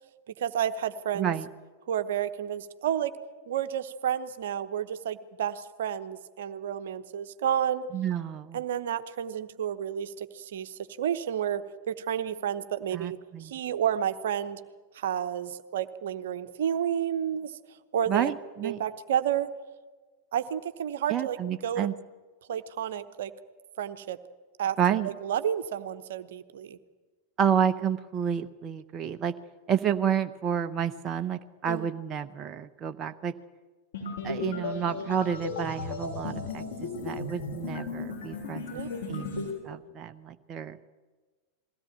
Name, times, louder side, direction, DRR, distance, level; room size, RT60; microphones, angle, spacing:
voice 1, 0.4-1.3 1.9-3.1 3.5-7.9 8.5-14.6 14.9-17.5 17.9-18.3 18.6-19.5 20.3-21.4 21.6-21.9 22.5-23.3 23.8-24.2 24.6-24.8 25.0-26.8 31.7-31.9 38.7-39.1, right 9 dB, 60° right, 11 dB, 1.0 m, -31 dB
voice 2, 1.2-1.5 7.9-8.6 12.9-13.5 18.1-18.8 21.1-21.9 24.8-25.1 27.4-29.4 29.7-33.3 34.2-38.8 39.1-40.8, right 8 dB, 30° right, 8 dB, 0.8 m, -30 dB
sound 1, 33.9-39.5, left 3 dB, 60° left, 7.1 m, -35 dB
22.0 x 16.5 x 8.9 m, 1.4 s
figure-of-eight pair, 90°, 0 cm